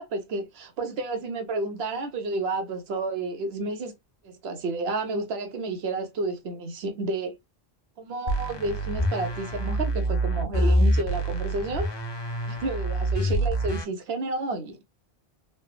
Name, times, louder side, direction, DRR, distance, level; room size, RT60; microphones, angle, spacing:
voice 1, 0.0-3.9 4.2-7.3 8.0-11.9 12.5-14.8, right 3 dB, 75° right, 1.1 m, -31 dB
sound 1, 8.3-13.8, right 1 dB, 35° left, 0.4 m, -26 dB
3.3 x 2.2 x 2.2 m
omnidirectional pair, 1.1 m